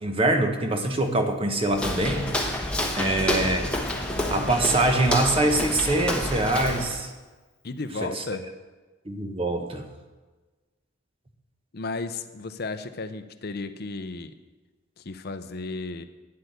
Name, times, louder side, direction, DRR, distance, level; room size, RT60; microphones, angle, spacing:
voice 1, 0.0-2.3 2.9-3.7 4.3-7.1 8.1-8.2 9.1-9.9, right 2 dB, 25° right, 5 dB, 1.0 m, -24 dB
Walk footsteps, 1.7-7.0, left 1 dB, 5° left, 1.1 m, -28 dB
voice 2, 7.6-8.4 11.7-14.3 15.0-16.0, left 3 dB, 50° left, 10 dB, 0.6 m, -34 dB
9.6 x 7.9 x 8.0 m, 1.3 s
head